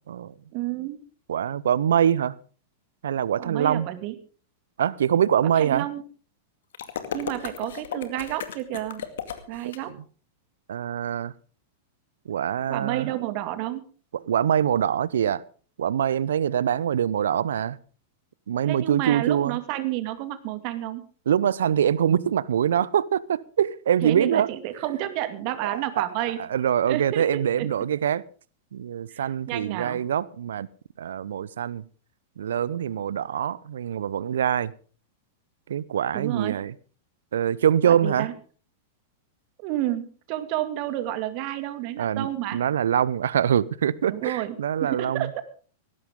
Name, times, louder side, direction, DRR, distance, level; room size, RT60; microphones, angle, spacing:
voice 1, 0.5-1.0 3.4-4.1 5.6-6.0 7.1-9.0 9.5-9.9 12.7-13.9 18.7-21.1 24.0-26.4 26.9-27.7 29.1-30.0 36.1-36.6 37.9-38.3 39.6-42.6 44.1-44.5 44.8-45.4, right 14 dB, 45° right, 2.3 m, -30 dB
voice 2, 1.3-2.3 3.0-3.9 4.8-5.9 10.7-11.3 12.3-13.1 14.1-15.4 15.8-17.8 18.5-19.6 21.3-24.5 25.6-28.2 28.7-30.7 31.0-31.8 32.4-34.7 35.7-36.7 37.3-38.3 42.0-45.3, right 9 dB, 70° right, 0.7 m, -24 dB
sound 1, 6.7-9.8, left 8 dB, 65° left, 2.2 m, -35 dB
18.5 x 16.5 x 3.7 m
figure-of-eight pair, 95°, 0 cm